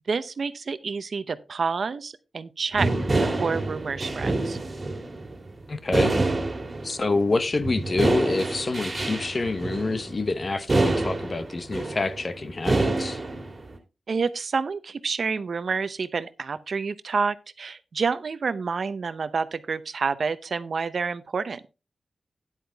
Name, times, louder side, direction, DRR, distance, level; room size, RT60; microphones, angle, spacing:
voice 1, 0.1-2.9 3.2-4.6 14.1-21.7, right 5 dB, 60° right, 0.7 m, -28 dB
sound 1, 2.7-7.2 7.5-13.8, right 2 dB, 35° right, 2.1 m, -27 dB
voice 2, 5.7-6.1 6.8-13.2, left 3 dB, 40° left, 0.9 m, -27 dB
10.0 x 8.8 x 3.4 m
wide cardioid pair, 105°, 0 cm